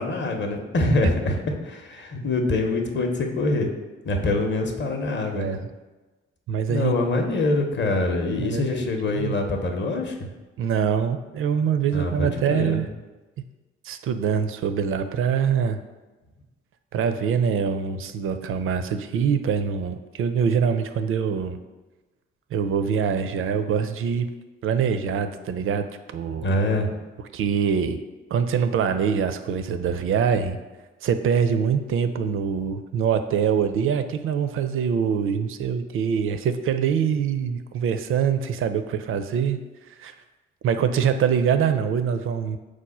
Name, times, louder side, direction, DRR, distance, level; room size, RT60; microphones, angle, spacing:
voice 1, 0.0-3.7 4.0-5.6 6.7-10.1 11.9-12.8 26.4-27.0, left 2 dB, 35° left, 3 dB, 0.7 m, -24 dB
voice 2, 5.3-5.7 6.5-7.0 8.4-9.4 10.6-12.9 13.8-15.8 16.9-21.6 22.5-24.3 24.6-25.9 26.1-26.5 27.3-28.0 28.3-30.6 31.0-39.6 40.0-40.1 40.6-42.6, right 7 dB, 40° right, 9 dB, 0.4 m, -24 dB
4.8 x 2.1 x 4.1 m, 1.2 s
figure-of-eight pair, 40°, 33 cm